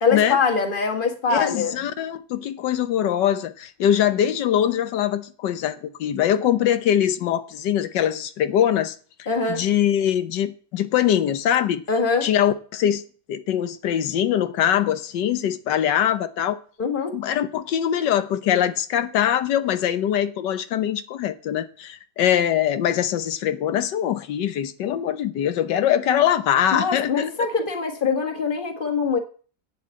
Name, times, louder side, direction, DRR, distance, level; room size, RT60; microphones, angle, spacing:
voice 1, 0.0-1.8 9.3-9.6 11.9-12.3 16.8-17.1 26.7-29.2, left 4 dB, 30° left, 1.8 m, -23 dB
voice 2, 1.3-11.8 12.2-13.0 13.3-16.6 17.1-27.3, left 10 dB, 90° left, 1.5 m, -22 dB
8.6 x 7.4 x 8.4 m
omnidirectional pair, 1.8 m